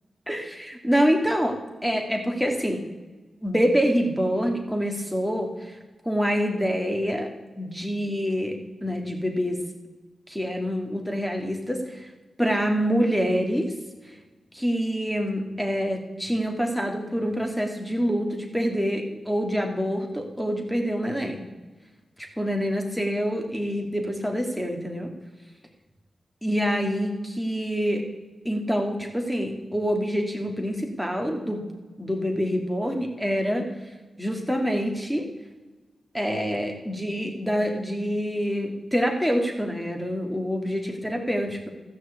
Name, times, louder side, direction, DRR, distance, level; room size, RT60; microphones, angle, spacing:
voice 1, 0.3-2.8 3.4-5.7 6.0-7.3 7.6-9.6 10.3-12.1 12.4-13.7 14.5-21.4 22.4-25.1 26.4-28.1 28.4-31.7 32.0-33.7 34.2-35.3 36.1-41.7, equal, 5° left, 3 dB, 2.8 m, -26 dB
14.0 x 6.4 x 8.4 m, 1.2 s
cardioid pair, 50°, 0 cm